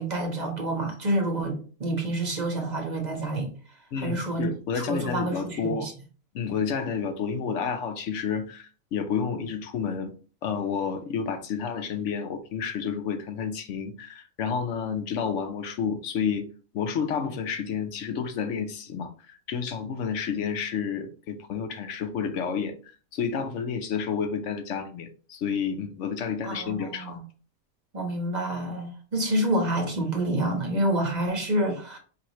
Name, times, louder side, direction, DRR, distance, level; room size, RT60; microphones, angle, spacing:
voice 1, 0.0-3.5 4.0-4.5 4.7-5.9 26.4-27.2 27.9-32.0, right 1 dB, 35° right, 1.2 m, -28 dB
voice 2, 3.9-5.9 6.3-10.1 10.4-16.5 16.7-22.8 23.1-27.2, left 6 dB, 70° left, 1.0 m, -30 dB
4.7 x 3.5 x 3.0 m
omnidirectional pair, 1.4 m